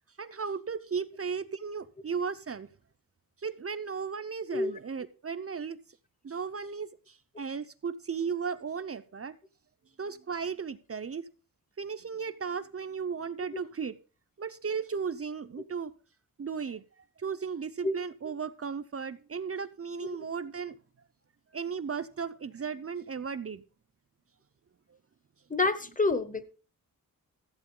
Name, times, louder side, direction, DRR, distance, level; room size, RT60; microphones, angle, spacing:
voice 1, 0.2-2.7 3.4-5.8 6.2-9.4 10.0-11.3 11.8-14.0 14.4-15.9 16.4-16.8 17.2-20.8 21.5-23.6 24.9-25.0, right 6 dB, 40° right, 0.6 m, -35 dB
voice 2, 25.5-26.4, left 3 dB, 25° left, 1.0 m, -27 dB
14.5 x 8.7 x 3.8 m
wide cardioid pair, 155°, 35 cm